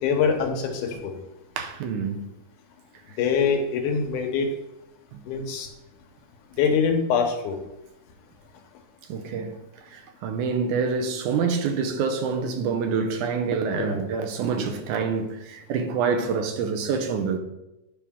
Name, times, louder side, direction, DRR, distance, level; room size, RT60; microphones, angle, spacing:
voice 1, 0.0-1.2 3.2-4.5 5.3-5.7 6.6-7.6 13.8-14.0, left 6 dB, 80° left, 2.4 m, -24 dB
voice 2, 1.6-2.3 5.1-5.2 9.1-9.5 9.9-17.4, right 5 dB, 80° right, 2.2 m, -26 dB
9.6 x 5.6 x 3.6 m
omnidirectional pair, 3.6 m